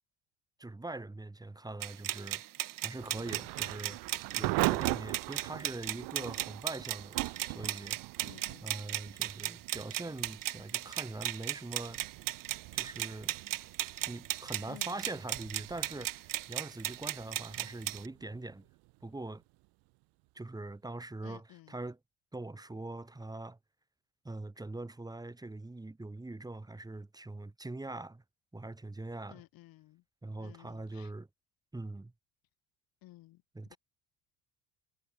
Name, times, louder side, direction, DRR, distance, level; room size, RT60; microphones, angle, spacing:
voice 1, 0.6-2.4 2.8-8.0 8.6-12.0 12.7-13.3 14.1-18.7 19.0-19.4 20.3-22.0 22.3-23.6 24.2-28.2 28.5-29.4 30.2-31.3 31.7-32.1 33.5-33.8, right 2 dB, 10° right, 3.0 m, -42 dB
sound 1, 1.8-18.1, right 14 dB, 55° right, 3.0 m, -37 dB
Thunder / Rain, 3.0-19.7, right 28 dB, 80° right, 0.7 m, -41 dB
voice 2, 8.2-8.7 14.7-15.0 21.2-21.8 29.3-30.0 30.4-31.1 33.0-33.4 33.7-33.8, left 17 dB, 65° left, 2.1 m, -54 dB
cardioid pair, 120°, 38 cm